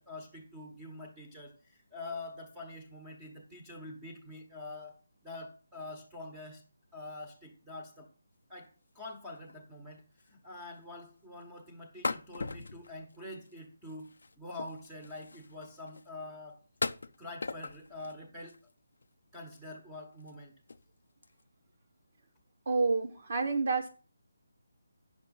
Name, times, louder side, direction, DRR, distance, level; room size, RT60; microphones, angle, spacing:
voice 1, 0.0-5.0 5.2-6.6 6.9-8.1 8.5-14.1 14.4-16.6 17.2-18.6 19.3-20.5, left 2 dB, 10° right, 1 dB, 1.2 m, -45 dB
sound 1, 9.3-9.5 9.9-10.0 10.2-10.5 10.8-10.9 12.0-13.6 13.9-16.1 16.8-18.2 18.4-19.0 19.6-19.7 20.1-20.3 20.7-20.9 21.2-21.4, left 3 dB, 75° left, 0.6 m, -40 dB
voice 2, 22.6-23.9, right 4 dB, 45° right, 2 dB, 1.1 m, -29 dB
9.0 x 6.0 x 5.4 m, 0.36 s
hypercardioid pair, 170°, 0 cm